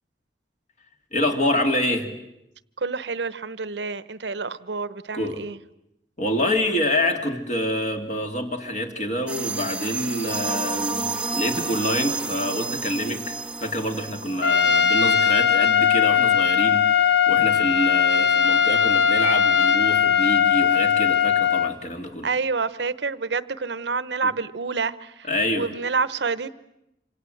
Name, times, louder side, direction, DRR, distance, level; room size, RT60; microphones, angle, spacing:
voice 1, 1.1-2.1 5.1-5.5 6.2-22.3 24.2-24.3 25.2-25.7, left 1 dB, 45° left, 4 dB, 2.6 m, -27 dB
voice 2, 2.8-5.6 22.2-25.1 25.5-26.5, right 4 dB, 70° right, 16 dB, 0.9 m, -28 dB
sound 1, 9.3-15.6, right 4 dB, 5° right, 1.3 m, -30 dB
Trumpet, 14.4-21.7, left 7 dB, 70° left, 1.2 m, -19 dB
27.0 x 26.5 x 7.9 m, 0.86 s
head